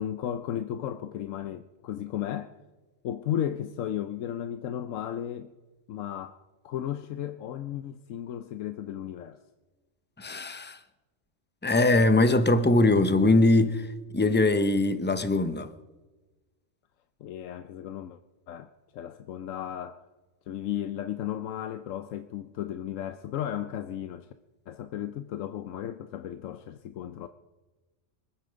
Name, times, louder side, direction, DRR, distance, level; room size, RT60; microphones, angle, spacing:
voice 1, 0.0-2.5 3.0-5.5 5.9-9.4 17.2-18.2 18.5-20.1 20.5-24.3 24.7-27.3, left 10 dB, 80° left, 1.0 m, -34 dB
voice 2, 10.2-10.8 11.6-13.9 14.1-15.7, left 2 dB, 10° left, 0.5 m, -22 dB
24.5 x 9.5 x 5.2 m
omnidirectional pair, 1.3 m